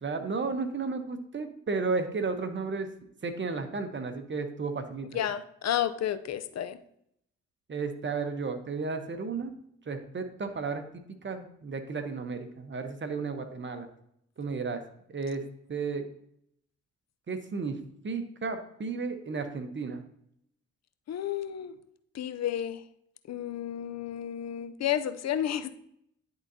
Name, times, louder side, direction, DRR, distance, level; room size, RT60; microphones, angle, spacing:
voice 1, 0.0-2.9 3.2-5.2 7.7-9.5 9.9-13.9 14.4-14.8 15.1-15.4 15.7-16.0 17.3-17.8 18.0-20.0, right 4 dB, 35° right, 7 dB, 1.0 m, -33 dB
voice 2, 5.1-6.8 21.1-21.8 22.1-22.8 23.3-25.7, left 10 dB, 55° left, 12 dB, 0.6 m, -31 dB
11.0 x 3.9 x 2.8 m, 0.72 s
supercardioid pair, 50°, 31 cm